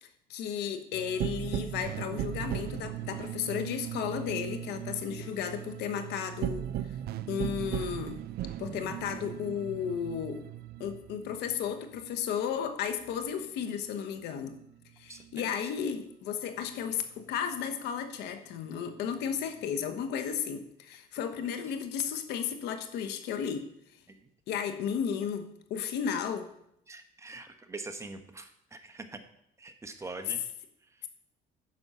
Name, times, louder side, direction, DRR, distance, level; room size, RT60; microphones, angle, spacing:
voice 1, 0.0-6.7 7.3-8.2 8.6-10.4 10.8-14.6 15.0-23.7 24.5-26.5, left 8 dB, 85° left, 8 dB, 1.2 m, -34 dB
sound 1, 0.9-13.9 14.2-16.1 16.4-18.1 18.6-20.4, right 12 dB, 65° right, 0.5 m, -39 dB
voice 2, 15.1-15.7 24.1-24.2 26.9-29.2 29.6-30.4 30.9-31.1, right 3 dB, 15° right, 7 dB, 1.1 m, -44 dB
9.7 x 6.1 x 5.6 m, 0.77 s
cardioid pair, 110°, 17 cm